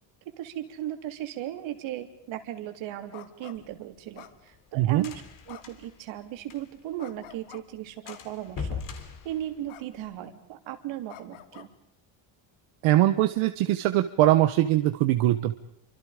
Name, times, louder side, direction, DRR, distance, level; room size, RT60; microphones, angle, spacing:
voice 1, 0.4-5.1 5.5-8.8 9.2-11.7, right 12 dB, 70° right, 7 dB, 3.4 m, -37 dB
sound 1, 3.1-3.6 4.1-4.8 5.5-5.9 7.0-7.6 8.0-8.5 9.7-9.9 10.2-10.4 11.1-11.7, left 11 dB, 85° left, 2.3 m, -47 dB
sound 2, 3.5-7.0 7.2-7.3 7.6-7.8 8.1-10.1, left 5 dB, 40° left, 3.2 m, -40 dB
voice 2, 12.8-15.6, right 14 dB, 85° right, 8 dB, 1.4 m, -22 dB
30.0 x 25.0 x 5.2 m, 0.73 s
cardioid pair, 175°, 48 cm